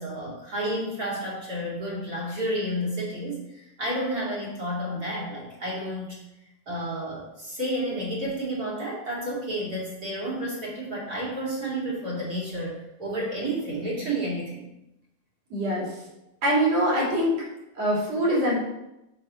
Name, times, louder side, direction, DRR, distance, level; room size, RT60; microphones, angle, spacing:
voice 1, 0.0-6.2 6.7-14.7, right 1 dB, 30° right, -5 dB, 2.8 m, -31 dB
voice 2, 15.5-16.0 16.4-17.3 17.8-18.6, right 1 dB, 55° right, -5 dB, 3.9 m, -23 dB
6.9 x 6.6 x 5.1 m, 0.89 s
omnidirectional pair, 3.5 m